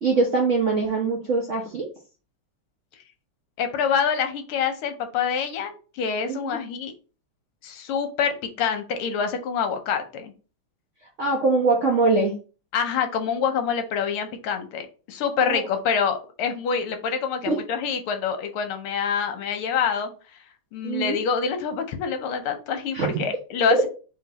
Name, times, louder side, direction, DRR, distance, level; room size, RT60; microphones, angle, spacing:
voice 1, 0.0-1.9 6.3-6.6 11.2-12.3 15.4-15.6 17.5-17.6 20.8-21.2 22.9-23.2, right 3 dB, 60° right, -1 dB, 0.7 m, -22 dB
voice 2, 3.6-6.9 7.6-10.3 12.7-20.1 20.7-23.9, left 6 dB, 80° left, 7 dB, 1.6 m, -26 dB
3.8 x 3.4 x 3.9 m, 0.36 s
omnidirectional pair, 2.4 m